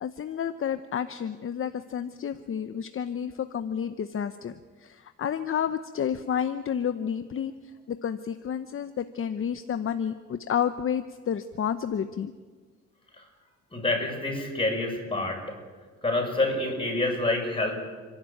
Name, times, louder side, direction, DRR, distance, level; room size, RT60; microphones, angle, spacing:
voice 1, 0.0-7.5 7.9-12.3, left 8 dB, 45° left, 11 dB, 0.9 m, -30 dB
voice 2, 13.7-15.6 16.0-17.7, left 2 dB, 15° left, 1 dB, 7.4 m, -27 dB
30.0 x 11.5 x 9.1 m, 1.5 s
cardioid pair, 90°, 30 cm